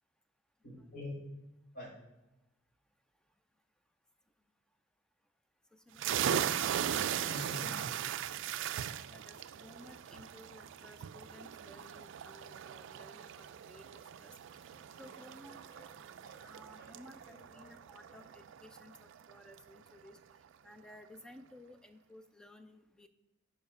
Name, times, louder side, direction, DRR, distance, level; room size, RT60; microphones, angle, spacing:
voice 1, 0.6-1.3 1.7-2.0 7.3-7.8 14.7-18.4, left 1 dB, 45° left, -2 dB, 2.2 m, -48 dB
voice 2, 5.7-6.4 8.4-8.7 9.1-14.4 15.0-15.6 16.4-20.2 20.6-23.1, left 1 dB, 5° left, 8 dB, 0.5 m, -56 dB
sound 1, 6.0-19.3, right 9 dB, 65° right, 0.3 m, -38 dB
7.0 x 5.2 x 5.3 m, 1.0 s
head